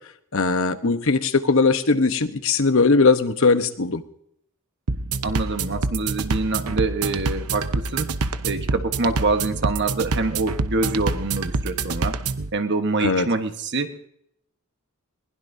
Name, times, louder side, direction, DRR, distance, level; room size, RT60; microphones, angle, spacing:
voice 1, 0.3-4.0 13.0-13.3, left 4 dB, 65° left, 9 dB, 1.0 m, -19 dB
sound 1, 4.9-12.5, right 3 dB, 85° right, 0.9 m, -27 dB
voice 2, 5.2-8.1 8.4-12.2 12.5-14.1, right 3 dB, 50° right, 7 dB, 1.3 m, -25 dB
21.5 x 20.0 x 2.7 m, 0.72 s
head